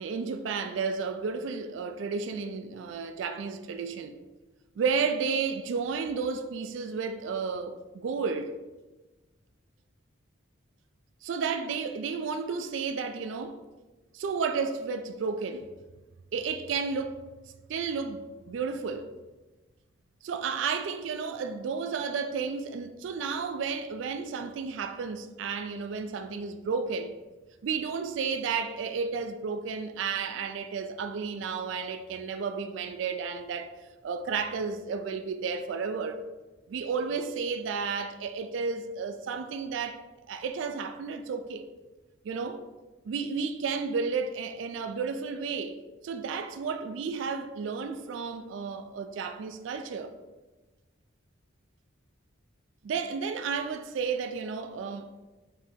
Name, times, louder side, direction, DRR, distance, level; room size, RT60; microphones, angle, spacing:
voice 1, 0.0-4.2 4.8-8.5 11.2-13.6 14.1-15.7 16.3-17.2 17.7-19.1 20.2-27.1 27.6-33.7 34.0-36.3 36.7-40.0 40.3-41.7 42.2-42.6 43.0-45.8 46.0-50.1 52.8-55.1, right 5 dB, 80° right, 0.3 m, -32 dB
5.2 x 2.8 x 3.5 m
head